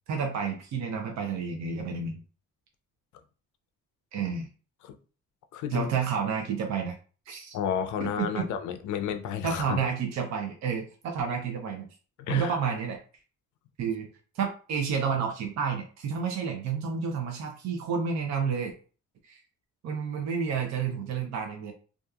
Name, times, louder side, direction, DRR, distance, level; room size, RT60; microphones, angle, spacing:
voice 1, 0.1-2.2 4.1-4.5 5.7-6.9 7.3-7.6 8.0-8.4 9.4-11.9 12.3-13.0 13.8-14.1 14.3-18.7 19.3-19.4 19.8-21.7, right 6 dB, 65° right, 0.6 m, -30 dB
voice 2, 5.5-5.9 7.5-9.8 12.2-12.6, left 8 dB, 75° left, 0.5 m, -31 dB
2.7 x 2.4 x 2.3 m
cardioid pair, 90°, 30 cm